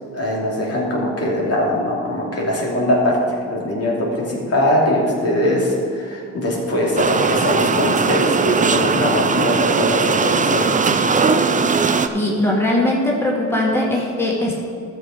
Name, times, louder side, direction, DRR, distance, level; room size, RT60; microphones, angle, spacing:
voice 1, 0.1-10.7, left 1 dB, 50° left, -3 dB, 2.7 m, -21 dB
sound 1, 7.0-12.1, right 5 dB, 25° right, 0.6 m, -19 dB
voice 2, 12.1-14.5, left 1 dB, 10° left, -3 dB, 1.8 m, -20 dB
12.5 x 6.7 x 5.1 m, 2.3 s
cardioid pair, 90°, 30 cm